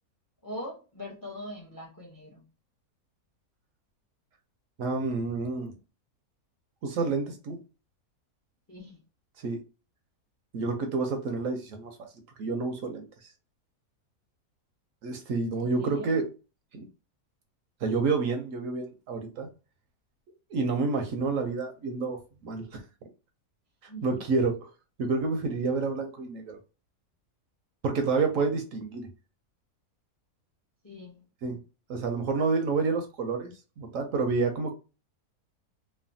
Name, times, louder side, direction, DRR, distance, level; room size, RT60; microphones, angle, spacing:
voice 1, 0.4-2.5 8.7-9.0 15.6-16.1 23.9-24.2 30.8-31.2, equal, 30° left, 0.4 m, -42 dB
voice 2, 4.8-5.7 6.8-7.6 9.4-9.6 10.5-11.9 12.4-13.1 15.0-16.3 16.7-16.8 17.8-19.5 20.5-22.2 22.4-22.8 24.0-24.5 25.0-26.6 27.8-29.1 31.4-31.6 31.9-34.7, right 4 dB, 70° right, 0.9 m, -29 dB
3.2 x 2.1 x 2.5 m
omnidirectional pair, 1.6 m